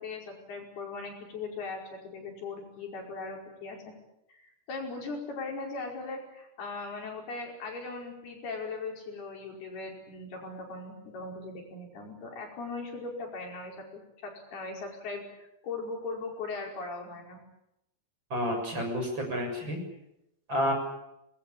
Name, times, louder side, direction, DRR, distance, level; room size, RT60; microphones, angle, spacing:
voice 1, 0.0-3.8 4.3-13.9 14.2-17.4, left 3 dB, 85° left, 1 dB, 7.2 m, -39 dB
voice 2, 18.3-19.8 20.5-20.7, equal, 30° right, 2 dB, 7.5 m, -30 dB
26.0 x 21.5 x 8.7 m, 0.84 s
omnidirectional pair, 4.4 m